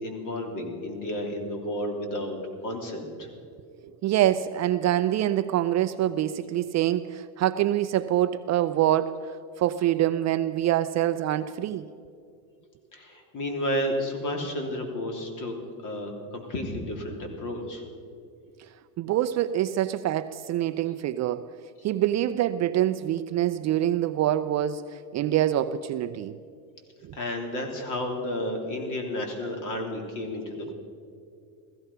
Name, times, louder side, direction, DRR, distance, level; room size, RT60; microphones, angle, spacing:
voice 1, 0.0-3.3 12.9-15.5 15.8-17.8 27.1-30.7, left 1 dB, 45° left, 3.4 m, -32 dB
voice 2, 4.0-9.3 9.6-11.8 19.0-21.5 21.8-26.4 30.6-30.7, right 12 dB, 40° right, 0.5 m, -25 dB
16.0 x 15.5 x 5.6 m
supercardioid pair, 115°, 45 cm